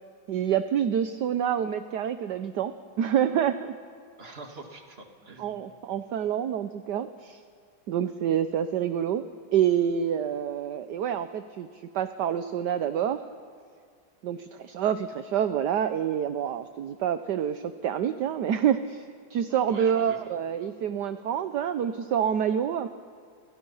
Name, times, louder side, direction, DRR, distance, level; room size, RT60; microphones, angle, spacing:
voice 1, 0.3-3.8 5.4-7.4 7.9-13.2 14.2-22.9, right 9 dB, 65° right, 10 dB, 1.3 m, -27 dB
voice 2, 4.2-5.8 19.7-20.3, right 3 dB, 30° right, 3 dB, 2.3 m, -45 dB
29.5 x 29.0 x 5.6 m, 2.2 s
omnidirectional pair, 2.2 m